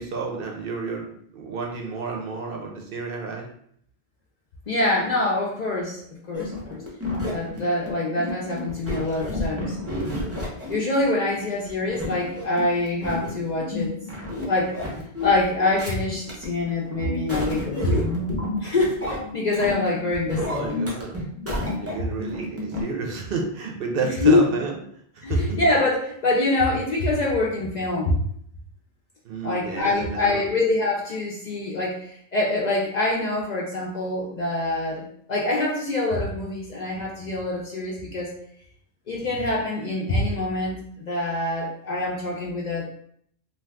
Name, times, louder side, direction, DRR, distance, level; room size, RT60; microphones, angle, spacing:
voice 1, 0.0-3.5 20.3-21.2 21.8-24.8 25.1-25.6 29.2-30.5, right 4 dB, 65° right, 0 dB, 0.7 m, -31 dB
voice 2, 4.7-6.0 6.3-6.8 7.3-9.8 10.7-13.9 14.5-14.8 15.2-18.1 18.6-19.0 19.3-20.8 24.0-24.4 25.2-28.2 29.4-38.4 39.1-42.9, left 2 dB, 55° left, -3 dB, 0.5 m, -25 dB
sound 1, 6.3-22.8, left 1 dB, 15° right, 0.6 m, -31 dB
2.5 x 2.3 x 3.3 m, 0.66 s
omnidirectional pair, 1.1 m